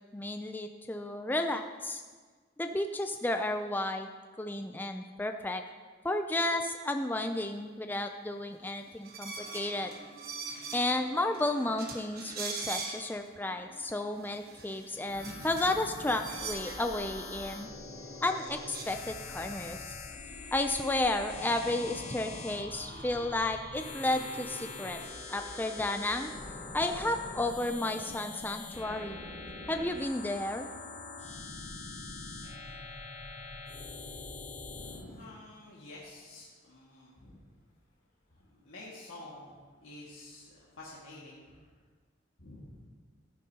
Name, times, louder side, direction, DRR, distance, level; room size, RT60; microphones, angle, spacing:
voice 1, 0.0-2.0 2.6-4.1 4.4-5.6 6.0-9.9 10.7-17.7 18.2-19.8 20.5-25.0 25.3-26.3 26.7-29.2 29.7-30.7, left 2 dB, 10° left, 6 dB, 0.3 m, -32 dB
sound 1, 8.6-9.0 9.3-12.6 13.0-15.5 16.3-19.7 20.1-23.3 23.6-26.9 27.4-28.2, right 1 dB, 30° right, 2.5 m, -56 dB
sound 2, 9.0-11.0 11.3-11.4 11.8-13.3 13.8-13.9 14.2-16.8 18.2-18.3 18.5-18.8, right 4 dB, 50° right, 1.3 m, -42 dB
sound 3, 15.1-35.0, left 3 dB, 35° left, 0.9 m, -44 dB
voice 2, 34.6-37.4 38.4-39.5 39.8-41.6 42.4-42.7, left 2 dB, 85° left, -7 dB, 1.8 m, -49 dB
14.5 x 9.3 x 2.8 m, 1.5 s
head